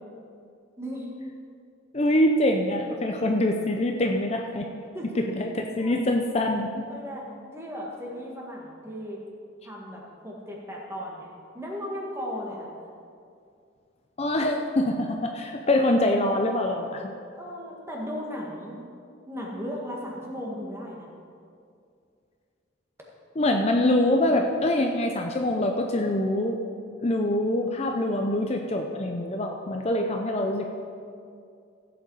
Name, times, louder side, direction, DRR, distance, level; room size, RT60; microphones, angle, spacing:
voice 1, 0.8-1.1 4.9-5.2 5.8-5.9 6.9-7.3 7.5-9.2 9.6-11.3 11.5-12.7 17.4-18.8 19.3-21.1, equal, 15° right, -2 dB, 1.9 m, -36 dB
voice 2, 1.9-4.7 5.4-6.7 14.2-17.1 23.4-26.6 27.0-30.7, left 1 dB, 30° left, 2 dB, 0.6 m, -24 dB
15.0 x 8.1 x 4.8 m, 2.4 s
head